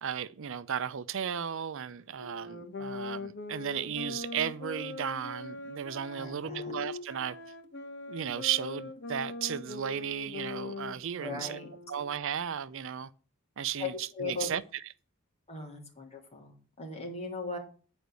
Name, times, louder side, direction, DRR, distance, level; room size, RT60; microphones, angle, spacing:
voice 1, 0.0-7.4 8.1-11.6 11.9-13.1 13.6-14.8, right 8 dB, 65° right, 0.5 m, -35 dB
sound 1, 2.1-12.2, left 3 dB, 55° left, 1.5 m, -42 dB
voice 2, 6.1-6.7 11.2-11.7 13.8-14.5 15.5-17.6, left 3 dB, 30° left, 3.3 m, -38 dB
9.8 x 5.1 x 8.1 m
head